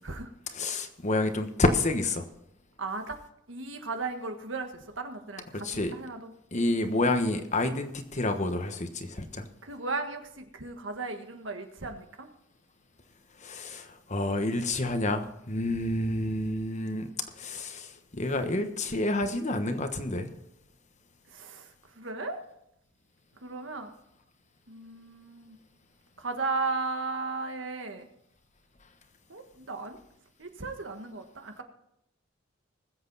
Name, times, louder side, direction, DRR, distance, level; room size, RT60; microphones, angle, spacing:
voice 1, 0.5-2.3 5.6-5.9 6.5-9.5 13.4-20.3, left 2 dB, 35° left, 1.2 m, -29 dB
voice 2, 2.8-3.2 3.5-5.6 5.9-6.3 9.6-12.3 18.3-18.4 21.3-22.4 23.4-23.9 24.7-25.6 26.2-28.1 29.3-30.0 30.4-31.6, right 3 dB, 70° right, 1.5 m, -36 dB
20.5 x 7.9 x 4.1 m
head